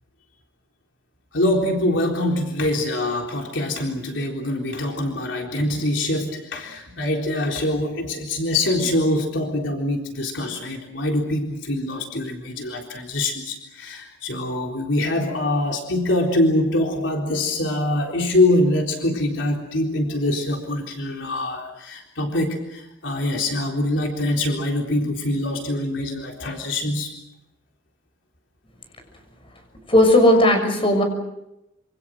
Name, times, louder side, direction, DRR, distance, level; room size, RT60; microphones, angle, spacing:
voice 1, 1.3-27.1, left 1 dB, 70° left, 1 dB, 3.9 m, -24 dB
voice 2, 29.9-31.0, left 1 dB, 30° left, 5 dB, 6.5 m, -15 dB
27.0 x 26.5 x 6.3 m, 0.87 s
head